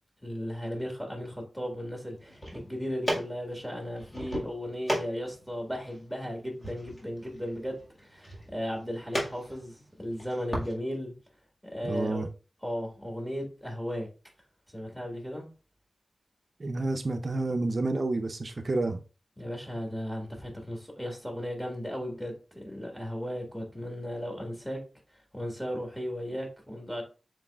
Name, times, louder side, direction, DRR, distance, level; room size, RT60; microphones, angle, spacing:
voice 1, 0.2-11.1 11.7-12.3 12.6-14.1 14.7-15.5 19.4-24.8 25.3-27.0, equal, 5° left, 1.6 m, -36 dB
sound 1, 2.2-10.7, equal, 30° left, 1.9 m, -37 dB
voice 2, 11.8-12.3 16.6-19.0, right 2 dB, 45° right, 0.5 m, -29 dB
7.1 x 3.0 x 2.4 m
wide cardioid pair, 75°, 0 cm